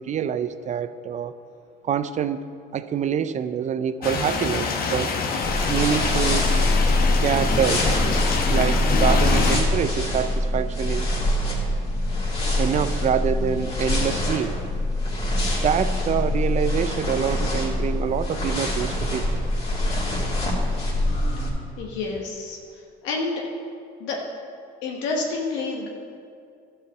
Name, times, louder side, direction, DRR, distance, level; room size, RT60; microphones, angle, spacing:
voice 1, 0.0-1.3 1.8-2.5 2.7-5.2 5.7-6.5 7.2-7.9 8.5-11.1 12.6-14.6 15.6-19.3, right 8 dB, 40° right, 13 dB, 0.5 m, -26 dB
sound 1, 4.0-9.6, left 4 dB, 50° left, 1.2 m, -25 dB
sound 2, 5.4-21.5, left 1 dB, 30° left, 2.6 m, -24 dB
voice 2, 21.8-22.6 23.0-23.3 24.0-24.2 24.8-25.9, left 3 dB, 80° left, -1 dB, 1.3 m, -28 dB
12.0 x 4.8 x 7.0 m, 2.4 s
supercardioid pair, 90°, 19 cm